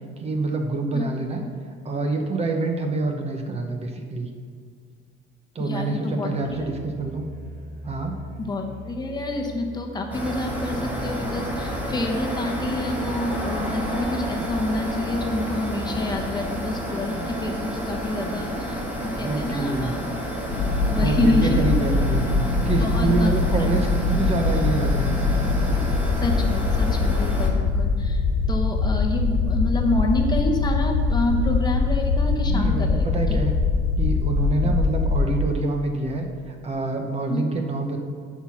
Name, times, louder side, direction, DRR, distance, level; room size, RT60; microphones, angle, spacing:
voice 1, 0.2-1.4 1.8-4.3 5.5-7.3 7.8-8.2 19.1-19.9 21.0-22.2 22.5-25.3 32.5-33.5 34.0-38.0, right 3 dB, 30° right, 4 dB, 0.9 m, -26 dB
voice 2, 5.6-6.8 8.4-20.0 20.8-21.6 22.8-23.7 26.2-28.2 28.5-33.2 34.6-34.7 37.3-37.4, left 1 dB, 20° left, 2 dB, 1.0 m, -28 dB
Musical instrument, 6.3-18.0, right 2 dB, 60° right, 2.4 m, -41 dB
sound 1, 10.1-27.5, equal, 10° right, 1.7 m, -30 dB
sound 2, 20.5-35.4, left 4 dB, 85° left, 1.4 m, -22 dB
11.0 x 4.7 x 5.7 m, 2.1 s
cardioid pair, 130°, 21 cm